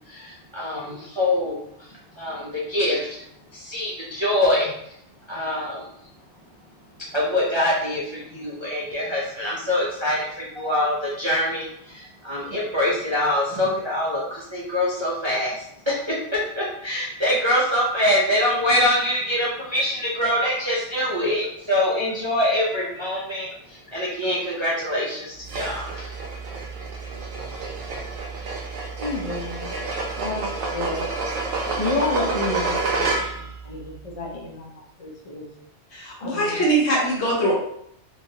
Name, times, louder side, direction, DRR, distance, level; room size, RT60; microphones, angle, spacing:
voice 1, 0.1-1.6 2.1-3.2 3.5-4.7 5.3-5.9 7.1-10.3 10.5-26.1, left 1 dB, 40° right, -6 dB, 0.4 m, -24 dB
sound 1, 25.5-33.6, right 3 dB, 60° right, 0.7 m, -29 dB
voice 2, 29.0-29.7 30.2-31.1 31.6-34.6 35.0-35.5 36.2-36.6, left 2 dB, 55° left, -2 dB, 0.4 m, -30 dB
voice 3, 35.9-37.5, right 1 dB, 70° left, -4 dB, 1.2 m, -22 dB
3.0 x 2.4 x 2.7 m, 0.71 s
omnidirectional pair, 1.2 m